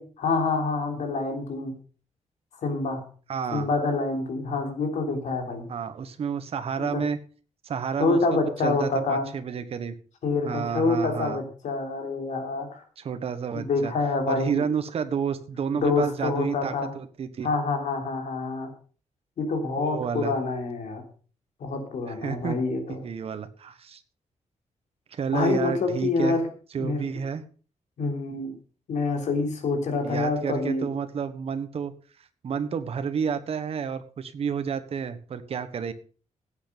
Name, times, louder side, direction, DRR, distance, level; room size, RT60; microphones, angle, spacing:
voice 1, 0.0-1.7 2.6-3.0 3.5-5.7 6.8-7.0 8.0-9.3 10.2-12.8 13.5-14.7 15.7-16.9 17.4-18.7 19.4-21.0 21.6-23.0 25.3-26.5 26.8-27.1 28.0-28.6 28.9-30.9, left 3 dB, 75° left, 3 dB, 3.6 m, -27 dB
voice 2, 3.3-3.7 5.7-7.2 7.6-8.2 8.6-9.9 10.4-11.4 13.0-13.9 14.3-17.5 19.8-20.3 22.1-22.6 22.9-24.0 25.1-26.4 26.7-27.4 30.0-31.9 32.4-35.9, right 6 dB, 50° right, 10 dB, 1.3 m, -30 dB
16.0 x 8.6 x 5.3 m, 0.40 s
wide cardioid pair, 175°, 13 cm